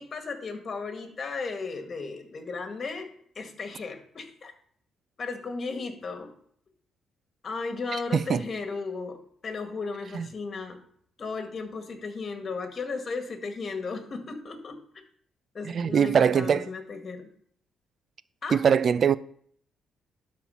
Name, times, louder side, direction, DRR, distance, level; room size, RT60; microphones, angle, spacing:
voice 1, 0.0-3.1 3.4-4.5 5.2-6.3 7.4-9.2 9.4-10.8 11.2-14.8 15.5-17.3 18.4-18.6, left 4 dB, 40° left, 1.9 m, -35 dB
voice 2, 8.1-8.4 10.1-10.3 15.6-16.7 18.5-19.2, right 7 dB, 50° right, 0.5 m, -22 dB
12.0 x 4.4 x 5.8 m
cardioid pair, 90°, 0 cm